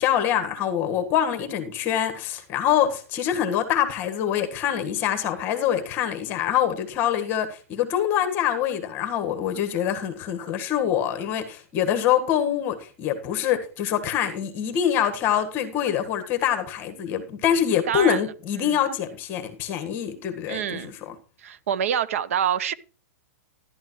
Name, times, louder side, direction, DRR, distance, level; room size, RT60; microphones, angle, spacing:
voice 1, 0.0-21.1, left 10 dB, 25° left, 1.5 m, -25 dB
voice 2, 17.9-18.2 18.6-18.8 20.5-20.9 21.4-22.7, right 9 dB, 65° right, 0.8 m, -26 dB
12.0 x 11.5 x 3.1 m
hypercardioid pair, 160°, 8 cm